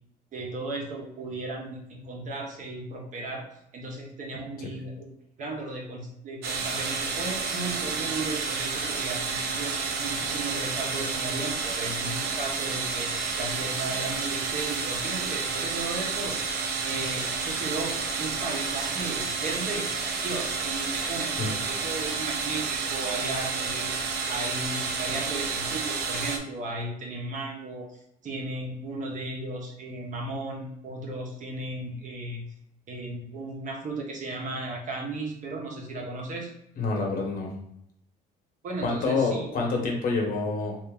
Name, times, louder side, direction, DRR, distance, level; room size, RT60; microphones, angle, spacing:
voice 1, 0.3-5.1 5.4-16.5 16.8-19.8 20.2-28.0 28.2-32.4 32.9-36.5 38.6-39.5, right 2 dB, 50° right, 0 dB, 1.0 m, -35 dB
sound 1, 6.4-26.4, right 5 dB, 75° right, 0.6 m, -30 dB
voice 2, 36.8-37.5 38.8-40.8, left 3 dB, 60° left, 0 dB, 1.1 m, -27 dB
2.8 x 2.6 x 3.7 m, 0.75 s
cardioid pair, 110°, 17 cm